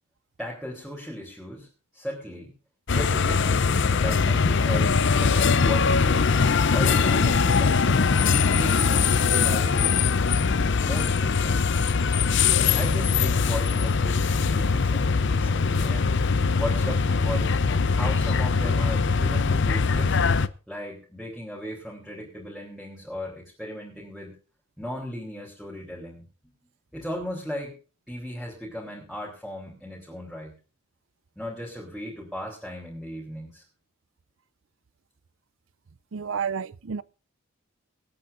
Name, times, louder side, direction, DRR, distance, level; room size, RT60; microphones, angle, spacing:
voice 1, 0.4-1.7 1.9-2.5 2.9-6.4 6.7-10.1 10.8-11.6 12.7-16.2 16.6-17.6 17.9-20.4 20.7-24.3 24.8-26.2 26.9-27.7 28.1-30.5 31.4-33.6, equal, ahead, 3.7 m, -36 dB
sound 1, 2.9-20.5, left 5 dB, 60° left, 0.7 m, -22 dB
voice 2, 36.1-37.0, right 6 dB, 65° right, 0.5 m, -30 dB
25.5 x 8.7 x 2.6 m
head